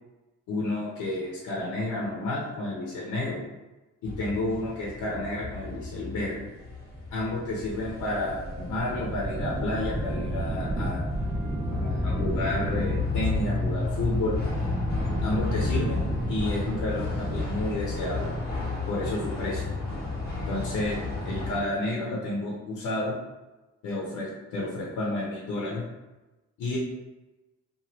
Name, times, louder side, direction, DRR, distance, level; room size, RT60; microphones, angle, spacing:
voice 1, 0.5-3.4 4.0-6.4 7.1-11.0 11.7-14.3 15.2-18.3 18.9-19.6 20.5-21.0 21.2-23.1 23.8-25.8 26.6-26.8, left 2 dB, 90° left, -4 dB, 0.8 m, -31 dB
sound 1, 4.0-21.6, left 3 dB, 30° left, 1.1 m, -32 dB
sound 2, 6.9-19.0, right 1 dB, 20° right, 0.5 m, -33 dB
2.8 x 2.5 x 2.9 m, 1.1 s
cardioid pair, 90°, 30 cm